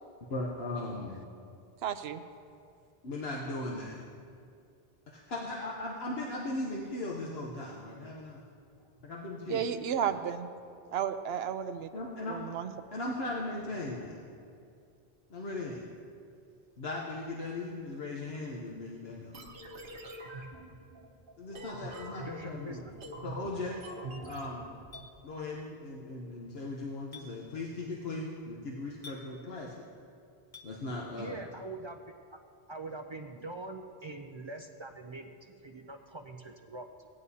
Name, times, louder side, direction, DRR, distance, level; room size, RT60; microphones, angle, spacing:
voice 1, 0.3-1.2 3.0-4.0 5.1-8.4 9.0-9.7 10.0-10.1 11.9-12.4 12.9-14.1 15.3-15.8 16.8-19.3 21.4-22.9 23.2-23.8 24.3-24.7 25.2-29.7 30.6-31.4, left 2 dB, 75° left, -3 dB, 1.2 m, -38 dB
voice 2, 1.8-2.2 9.5-10.5 10.9-11.9 12.3-12.7, right 8 dB, 80° right, 10 dB, 0.8 m, -32 dB
sound 1, 19.3-25.1, right 2 dB, 60° right, 1.2 m, -45 dB
voice 3, 22.2-22.9 31.1-32.0 32.3-32.4 32.7-37.1, right 2 dB, 45° right, 4 dB, 0.4 m, -44 dB
Chink clink, 24.9-25.1 27.1-27.3 29.0-29.2 30.5-30.7, left 3 dB, 35° left, 1.0 m, -47 dB
17.5 x 9.6 x 2.8 m, 2.4 s
omnidirectional pair, 1.0 m